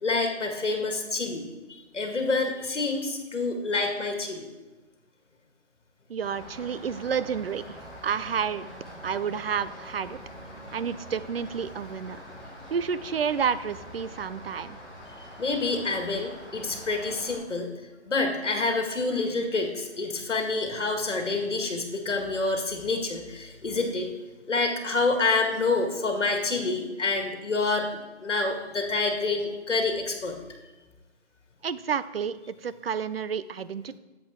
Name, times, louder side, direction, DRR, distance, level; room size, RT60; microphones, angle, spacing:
voice 1, 0.0-1.4 1.7-4.5 15.4-17.7 18.1-24.1 24.5-27.9 28.2-30.4, left 3 dB, 80° left, 4 dB, 1.9 m, -27 dB
voice 2, 6.1-7.6 8.0-8.7 9.0-10.2 10.7-12.2 12.7-14.8 31.6-34.0, right 7 dB, 55° right, 15 dB, 0.5 m, -30 dB
Rain, 6.2-17.4, equal, ahead, 3.5 m, -44 dB
11.0 x 7.6 x 3.6 m, 1.2 s
hypercardioid pair, 160°, 35 cm